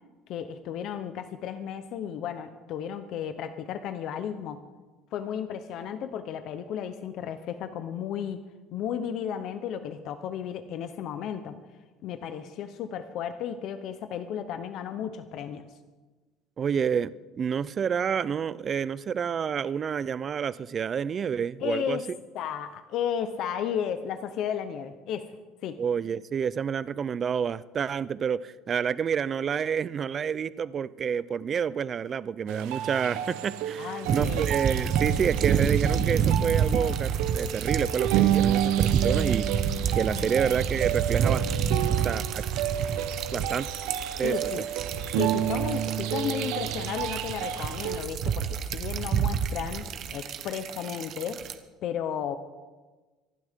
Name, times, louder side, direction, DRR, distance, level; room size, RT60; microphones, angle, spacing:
voice 1, 0.3-4.6 5.1-8.4 8.7-11.6 12.0-15.7 21.6-22.0 22.3-25.3 25.6-25.8 33.8-34.4 40.1-40.3 44.2-44.6 45.1-51.4 51.8-52.4, left 8 dB, 60° left, 10 dB, 0.9 m, -34 dB
voice 2, 16.6-22.0 25.8-39.5 40.0-41.5 41.9-42.4 43.3-43.7 44.2-44.6, right 7 dB, 35° right, 17 dB, 0.5 m, -29 dB
sound 1, 32.5-48.0, right 10 dB, 80° right, 0.9 m, -30 dB
sound 2, 34.1-51.5, right 8 dB, 50° right, 1.1 m, -28 dB
25.5 x 11.5 x 3.7 m, 1.3 s
cardioid pair, 120°, 0 cm